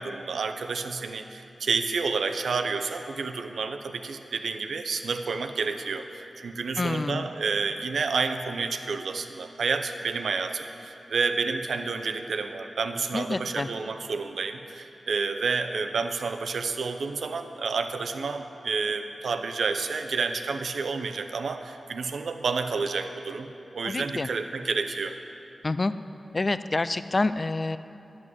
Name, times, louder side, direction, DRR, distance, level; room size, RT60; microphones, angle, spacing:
voice 1, 0.0-25.2, right 4 dB, 85° right, 7 dB, 0.6 m, -30 dB
voice 2, 6.8-7.3 13.1-13.7 23.8-24.3 25.6-25.9 26.3-27.8, left 2 dB, 45° left, 13 dB, 0.4 m, -27 dB
10.5 x 6.2 x 7.7 m, 2.8 s
cardioid pair, 45°, 0 cm